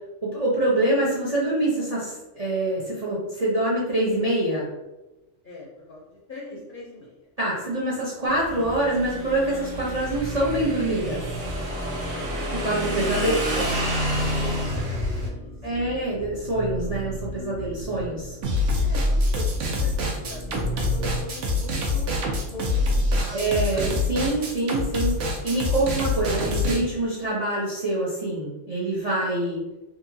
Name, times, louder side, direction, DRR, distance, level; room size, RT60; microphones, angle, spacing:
voice 1, 0.2-4.7 7.4-11.3 12.5-13.7 15.6-18.4 23.3-29.6, right 1 dB, 45° right, -6 dB, 0.5 m, -25 dB
voice 2, 5.4-7.2 12.1-12.3 14.4-16.1 18.8-22.2 22.5-23.4 23.7-24.2, left 2 dB, 60° left, -5 dB, 0.5 m, -41 dB
Motorcycle / Engine, 8.3-15.3, equal, 90° right, 1.2 m, -29 dB
sound 1, 9.9-21.2, right 1 dB, 10° left, 0.6 m, -37 dB
sound 2, 18.4-26.8, left 2 dB, 70° right, 0.9 m, -25 dB
2.8 x 2.5 x 2.6 m, 1.0 s
omnidirectional pair, 1.4 m